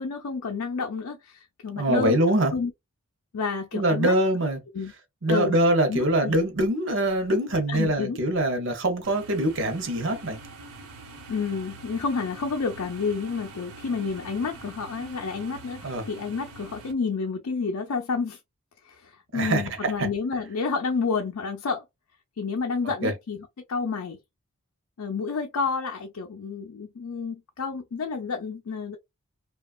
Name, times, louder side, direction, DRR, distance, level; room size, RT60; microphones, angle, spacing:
voice 1, 0.0-2.2 2.5-2.7 3.3-4.1 4.8-4.9 5.3-5.6 5.9-6.4 7.7-8.2 11.3-18.4 18.9-21.8 22.4-23.4 23.7-24.2 25.0-29.0, left 5 dB, 90° left, 0.5 m, -30 dB
voice 2, 1.8-2.5 3.7-4.6 5.2-10.4 15.8-16.1 19.3-20.1 23.0-23.1, right 1 dB, 60° right, 0.7 m, -24 dB
sound 1, 9.0-16.9, right 3 dB, 85° right, 0.9 m, -44 dB
3.0 x 2.3 x 2.3 m
head